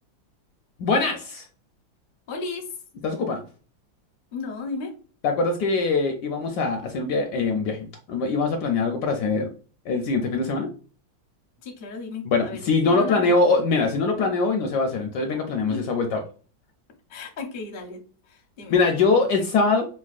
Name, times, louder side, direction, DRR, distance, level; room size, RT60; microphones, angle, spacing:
voice 1, 0.8-1.4 3.0-3.4 5.2-9.5 9.9-10.7 12.2-16.2 18.7-19.9, left 3 dB, 75° left, 4 dB, 1.0 m, -23 dB
voice 2, 2.3-2.7 4.3-4.9 11.6-13.3 15.7-15.8 17.1-18.0 18.3-18.8, left 4 dB, 55° left, 0 dB, 0.5 m, -34 dB
5.2 x 2.1 x 2.4 m, 0.38 s
omnidirectional pair, 2.1 m